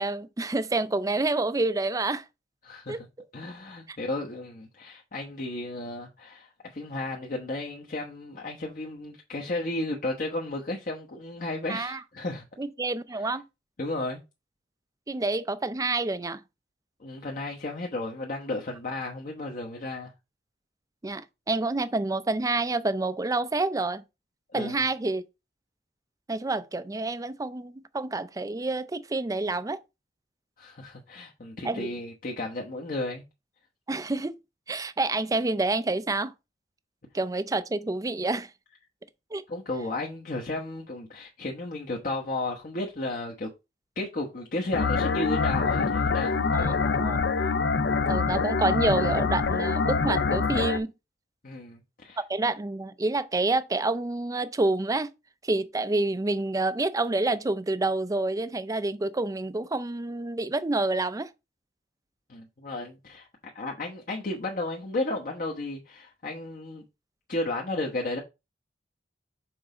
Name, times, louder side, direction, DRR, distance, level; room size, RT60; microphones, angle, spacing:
voice 1, 0.0-2.2 2.9-3.0 3.9-4.0 11.7-12.0 12.6-13.4 15.1-16.4 21.0-24.0 24.5-25.2 26.3-29.8 31.6-31.9 33.9-34.4 34.7-36.3 37.1-38.5 39.3-39.4 46.5-47.2 48.1-50.9 52.3-55.1 55.4-61.3, right 2 dB, 20° right, 0.5 m, -28 dB
voice 2, 2.6-3.0 3.3-12.4 13.8-14.2 17.0-20.1 24.5-24.8 30.6-33.2 39.5-43.5 44.0-47.0 51.4-52.2 62.3-63.3 63.5-66.8 67.3-68.2, left 2 dB, 50° left, 1.1 m, -33 dB
sound 1, 44.7-50.8, left 4 dB, 70° left, 0.7 m, -25 dB
6.2 x 4.0 x 4.9 m
head